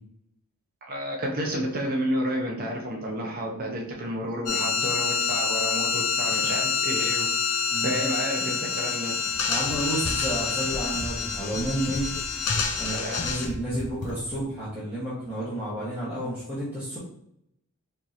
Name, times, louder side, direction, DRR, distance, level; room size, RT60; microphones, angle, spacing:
voice 1, 0.8-7.3 7.8-9.2 12.9-13.3, equal, 40° right, -1 dB, 0.7 m, -30 dB
sound 1, 4.5-13.5, left 5 dB, 85° left, 0.7 m, -27 dB
voice 2, 7.7-8.0 9.5-12.1 12.8-17.0, right 1 dB, 10° right, -12 dB, 1.1 m, -31 dB
Run, 9.2-14.5, left 2 dB, 35° left, 0.3 m, -36 dB
4.5 x 2.8 x 2.6 m, 0.75 s
head